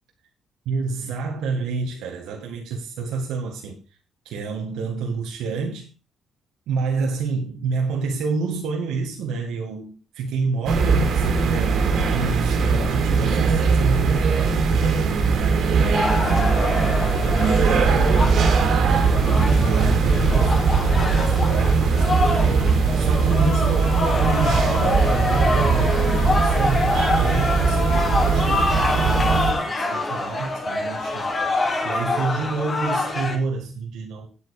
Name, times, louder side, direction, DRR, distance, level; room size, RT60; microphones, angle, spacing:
voice 1, 0.7-3.8 4.2-5.9 6.7-11.8 12.1-14.6 15.3-15.8 16.1-16.8 17.1-18.4 19.0-20.7 21.0-26.9 27.2-28.7 29.0-31.3 31.8-34.3, right 4 dB, 90° right, 2.0 m, -29 dB
sound 1, 10.7-29.5, right 4 dB, 70° right, 2.8 m, -20 dB
sound 2, 15.9-33.4, left 2 dB, 35° left, 3.0 m, -26 dB
9.8 x 8.5 x 5.0 m
cardioid pair, 90°, 0 cm